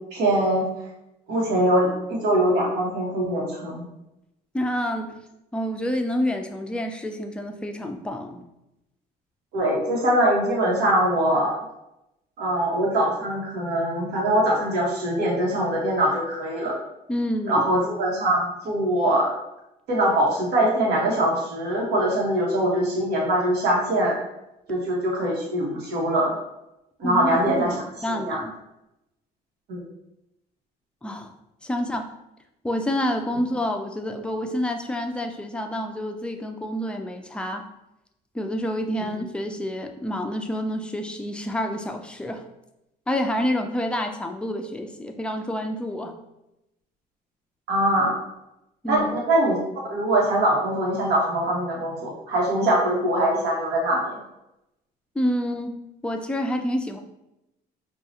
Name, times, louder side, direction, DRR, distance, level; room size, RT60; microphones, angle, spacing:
voice 1, 0.1-0.7 1.3-3.8 9.5-11.5 12.4-16.7 17.5-19.3 19.9-24.2 24.7-26.4 27.0-27.7 28.1-28.4 29.7-29.8 39.0-39.1 47.7-48.1 48.9-49.6 49.9-54.1, right 1 dB, 75° right, -3 dB, 1.2 m, -22 dB
voice 2, 4.5-5.2 5.5-8.4 17.1-17.6 27.0-28.5 31.0-31.3 31.6-32.1 32.6-37.7 38.3-42.4 43.1-46.2 48.8-49.1 55.2-57.0, equal, 5° left, 4 dB, 0.3 m, -28 dB
4.6 x 2.3 x 2.7 m, 0.89 s
cardioid pair, 110°, 17 cm